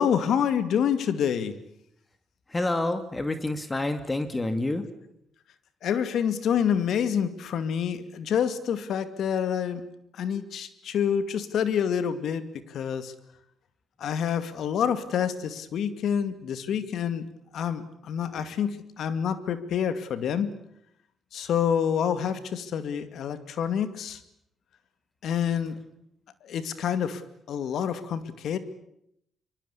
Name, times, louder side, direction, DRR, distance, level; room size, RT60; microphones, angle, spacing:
voice 1, 0.0-1.6 5.8-9.8 10.1-13.1 14.0-17.3 17.5-20.5 21.3-24.2 25.2-25.8 26.4-28.6, left 8 dB, 70° left, 12 dB, 2.3 m, -27 dB
voice 2, 2.5-4.9, left 2 dB, 20° left, 9 dB, 2.4 m, -28 dB
24.5 x 23.5 x 8.5 m, 0.75 s
cardioid pair, 90°, 0 cm